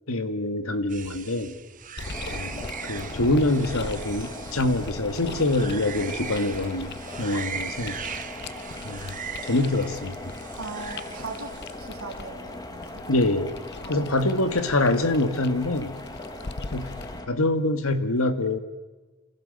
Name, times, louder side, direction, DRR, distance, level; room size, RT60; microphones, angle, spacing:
voice 1, 0.1-1.6 2.3-8.0 8.8-9.2 9.5-10.3 13.1-13.5 13.9-15.9 16.7-16.9 17.3-18.6, left 2 dB, 70° left, 10 dB, 1.8 m, -25 dB
sound 1, 0.9-11.8, right 7 dB, 40° right, 1.1 m, -40 dB
sound 2, 2.0-17.2, left 3 dB, 50° left, 0.9 m, -41 dB
sound 3, 2.0-17.3, left 2 dB, 20° left, 2.0 m, -40 dB
voice 2, 10.6-11.5 11.8-13.0 13.8-14.1, right 3 dB, 70° right, 1 dB, 3.4 m, -38 dB
27.5 x 16.0 x 7.9 m, 1.2 s
head